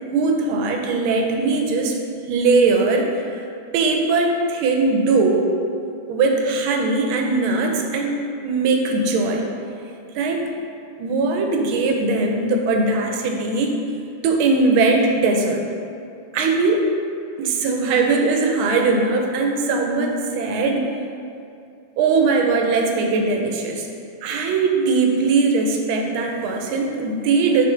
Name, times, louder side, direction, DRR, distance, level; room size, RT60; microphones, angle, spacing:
voice 1, 0.1-2.0 2.3-3.4 3.7-5.5 6.1-9.5 10.1-10.4 11.0-13.7 14.2-15.6 16.3-16.8 17.4-20.9 22.0-23.9 24.2-27.7, right 3 dB, 75° right, 2 dB, 1.5 m, -20 dB
6.8 x 5.0 x 3.2 m, 2.5 s
omnidirectional pair, 2.4 m